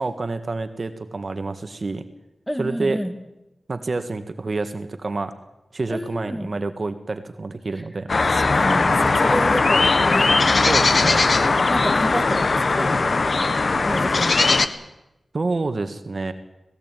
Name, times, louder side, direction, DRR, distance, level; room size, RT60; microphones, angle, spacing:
voice 1, 0.0-2.0 2.6-3.0 3.7-5.3 5.7-8.1 10.6-11.2 15.3-16.3, right 3 dB, 50° right, 9 dB, 1.6 m, -28 dB
voice 2, 2.5-3.1 5.9-6.5 8.2-10.3 11.7-13.1 13.8-14.5, equal, 5° left, 7 dB, 2.5 m, -29 dB
sound 1, 8.1-14.7, left 3 dB, 55° left, 1.4 m, -19 dB
19.5 x 17.5 x 9.1 m, 0.92 s
wide cardioid pair, 75°, 0 cm